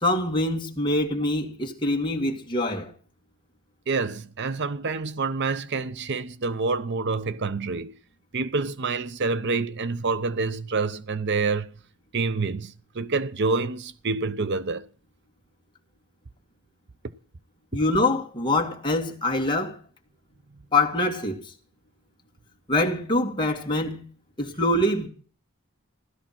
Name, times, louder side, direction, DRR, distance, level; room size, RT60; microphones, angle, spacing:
voice 1, 0.0-2.9 17.7-19.8 20.7-21.4 22.7-24.0 24.4-25.1, left 2 dB, 20° left, 2.2 m, -24 dB
voice 2, 3.9-7.9 8.3-11.7 12.1-14.9, right 4 dB, 50° right, 0.7 m, -27 dB
16.0 x 13.0 x 6.0 m
head